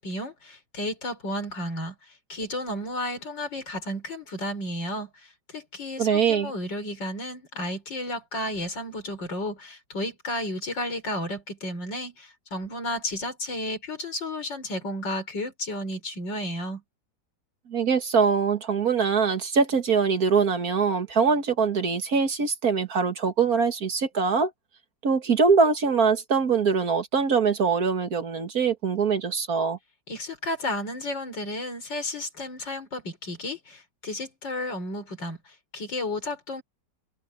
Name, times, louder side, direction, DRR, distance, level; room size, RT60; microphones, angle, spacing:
voice 1, 0.0-16.8 30.1-36.6, left 1 dB, 85° left, 5.9 m, -33 dB
voice 2, 6.0-6.5 17.7-24.5 25.0-29.8, right 5 dB, 55° right, 2.2 m, -23 dB
omnidirectional pair, 1.9 m